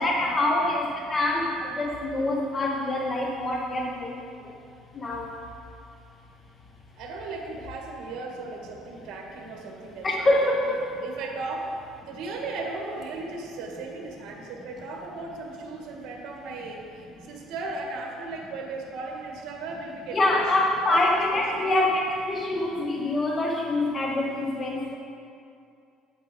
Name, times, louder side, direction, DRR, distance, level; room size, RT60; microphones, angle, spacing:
voice 1, 0.0-4.2 4.9-5.3 10.0-10.8 20.1-25.0, left 2 dB, 25° left, -1 dB, 0.7 m, -25 dB
voice 2, 6.9-10.3 11.0-21.8, right 3 dB, 65° right, 0 dB, 1.5 m, -36 dB
8.6 x 8.2 x 3.7 m, 2.5 s
cardioid pair, 145°, 0 cm